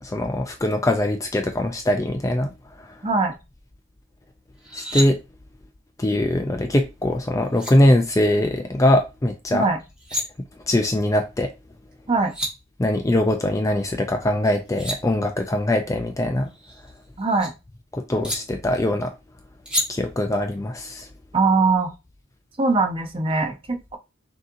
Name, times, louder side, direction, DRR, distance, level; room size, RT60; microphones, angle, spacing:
voice 1, 0.0-2.5 2.8-2.9 4.7-5.2 6.0-9.7 10.7-11.5 12.8-16.5 17.9-19.1 19.9-21.1, left 1 dB, 15° left, 0.4 m, -22 dB
voice 2, 3.0-3.3 9.5-9.8 12.1-12.3 17.2-17.5 21.3-21.9 22.6-24.0, right 3 dB, 25° right, 0.7 m, -21 dB
sound 1, 4.6-5.1 7.1-7.2 7.5-7.7 9.8-10.2 11.9-12.0 12.2-12.5 14.4-15.0 16.5-17.5 18.2-18.4 19.7-19.9, equal, 5° right, 1.4 m, -29 dB
6.1 x 2.8 x 2.6 m
head